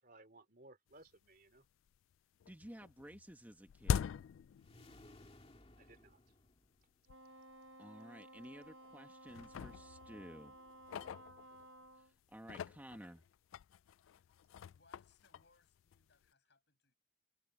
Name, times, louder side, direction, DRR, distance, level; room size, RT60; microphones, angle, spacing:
voice 1, 0.0-1.7 5.8-6.2, right 2 dB, 45° right, 3.6 m, -61 dB
sound 1, 1.1-1.2 1.5-2.1 2.4-5.3 5.6-5.7 6.5-6.6 7.1-7.2 7.5-7.7 8.4-8.9 9.3-11.9 12.3-16.3, left 7 dB, 80° left, 0.3 m, -43 dB
voice 2, 2.5-4.1 7.8-10.5 12.3-13.2, equal, 10° right, 1.6 m, -53 dB
sound 2, 4.6-7.2, left 1 dB, 30° left, 2.4 m, -61 dB
Wind instrument woodwind instrument, 7.1-12.1, right 1 dB, 70° right, 1.1 m, -57 dB
voice 3, 14.0-16.9, left 4 dB, 55° left, 7.8 m, -72 dB
head